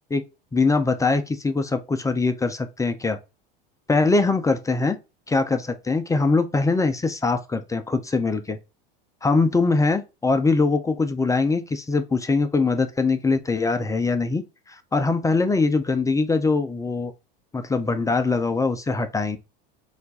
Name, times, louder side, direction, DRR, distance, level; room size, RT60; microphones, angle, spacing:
voice 1, 0.5-3.2 3.9-5.0 5.3-8.6 9.2-14.4 14.7-17.1 17.5-19.4, left 3 dB, 10° left, 0.4 m, -22 dB
4.3 x 2.5 x 4.0 m
hypercardioid pair, 100°, 29 cm